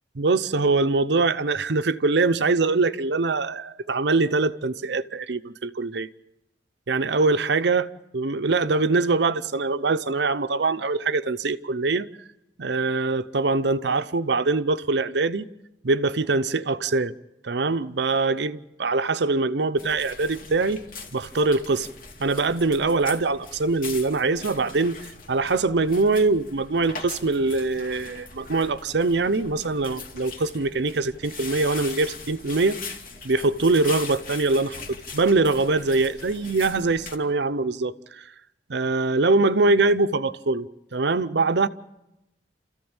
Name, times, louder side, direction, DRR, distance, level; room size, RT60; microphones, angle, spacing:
voice 1, 0.2-6.1 6.9-12.1 12.6-15.5 15.8-17.1 17.4-20.8 21.1-21.9 22.2-25.0 25.3-32.8 33.2-34.8 35.1-38.2 38.7-40.7 40.9-41.7, right 3 dB, 70° right, 0.7 m, -23 dB
sound 1, 19.8-37.2, left 4 dB, 50° left, 2.3 m, -41 dB
29.5 x 14.5 x 8.8 m
head